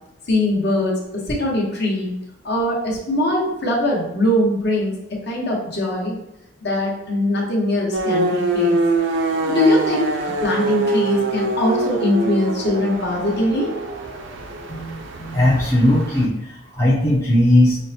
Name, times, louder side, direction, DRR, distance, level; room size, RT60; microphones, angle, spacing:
voice 1, 0.3-2.1 2.4-6.1 6.6-8.8 9.4-13.7, left 1 dB, 50° left, -2 dB, 1.0 m, -21 dB
sound 1, 7.9-16.3, right 2 dB, 60° right, 0.4 m, -24 dB
voice 2, 14.7-17.8, left 1 dB, 15° left, -6 dB, 0.5 m, -18 dB
6.2 x 2.1 x 2.7 m, 0.88 s
head